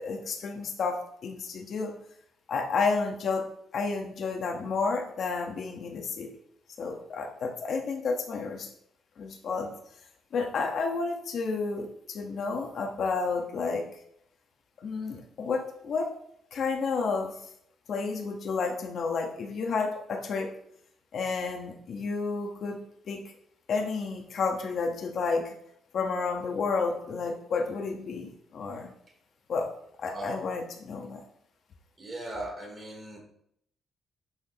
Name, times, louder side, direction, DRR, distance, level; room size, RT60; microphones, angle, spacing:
voice 1, 0.0-1.9 2.5-3.4 3.7-6.3 6.8-8.7 9.2-9.7 10.3-13.9 14.8-16.1 16.5-17.3 17.9-20.5 21.1-22.8 23.1-23.2 23.7-25.6 25.9-28.9 29.5-29.7 30.0-31.2, left 4 dB, 60° left, 3 dB, 1.3 m, -31 dB
voice 2, 32.0-33.2, right 1 dB, 25° right, -1 dB, 3.6 m, -38 dB
11.0 x 6.4 x 3.1 m, 0.70 s
cardioid pair, 90°, 0 cm